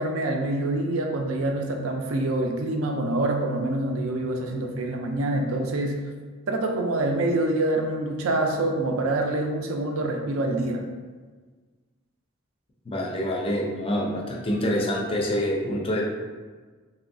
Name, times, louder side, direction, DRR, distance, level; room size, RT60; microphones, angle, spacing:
voice 1, 0.0-6.0 6.5-10.8, right 2 dB, 70° right, 3 dB, 0.4 m, -26 dB
voice 2, 12.9-16.0, equal, 25° left, -1 dB, 0.5 m, -26 dB
3.0 x 2.7 x 2.6 m, 1.4 s
head